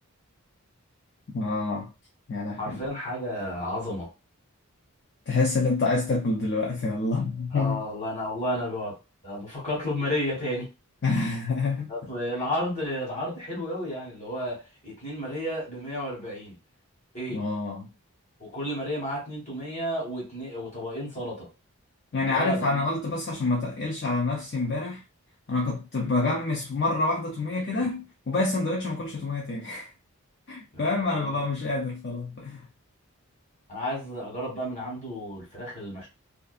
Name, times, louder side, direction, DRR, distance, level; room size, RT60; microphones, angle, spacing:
voice 1, 1.3-1.9 2.3-2.8 5.3-7.8 11.0-11.9 17.3-17.9 22.1-25.0 25.5-29.9 30.5-32.6, left 3 dB, 45° left, 0.4 m, -27 dB
voice 2, 2.6-4.1 7.5-8.9 9.2-10.7 11.9-16.5 17.1-17.4 18.4-21.5 22.2-22.8 30.7-31.4 33.7-36.1, equal, 30° left, 1.4 m, -32 dB
2.6 x 2.3 x 2.4 m
head